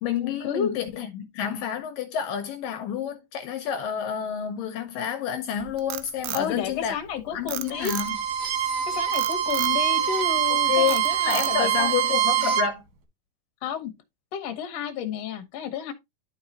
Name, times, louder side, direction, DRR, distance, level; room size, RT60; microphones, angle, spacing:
voice 1, 0.0-7.0 7.3-8.2 8.6-8.8 10.5-12.8, left 9 dB, 75° left, 2.4 m, -29 dB
Frog, 5.6-7.1 7.5-8.4 9.1-9.8 10.3-10.5 10.9-11.8, right 14 dB, 80° right, 2.2 m, -34 dB
voice 2, 6.3-7.9 8.9-11.9 13.6-13.9 14.3-15.9, left 8 dB, 60° left, 1.9 m, -31 dB
Bowed string instrument, 7.7-12.7, right 11 dB, 55° right, 2.1 m, -24 dB
11.0 x 4.8 x 2.8 m
omnidirectional pair, 4.3 m